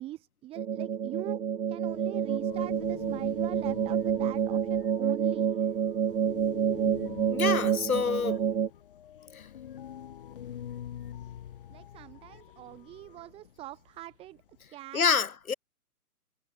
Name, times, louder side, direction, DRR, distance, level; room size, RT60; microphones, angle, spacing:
voice 1, 0.0-1.4 1.7-5.5 11.7-14.4 14.7-15.0, right 15 dB, 10° right, 2.0 m, -43 dB
sound 1, 0.6-8.7, right 8 dB, 70° right, 0.7 m, -28 dB
sound 2, 1.9-14.7, left 10 dB, 35° left, 1.4 m, -46 dB
voice 2, 7.3-8.4 9.3-9.4 14.9-15.5, left 6 dB, 65° left, 1.4 m, -27 dB
figure-of-eight pair, 135°, 46 cm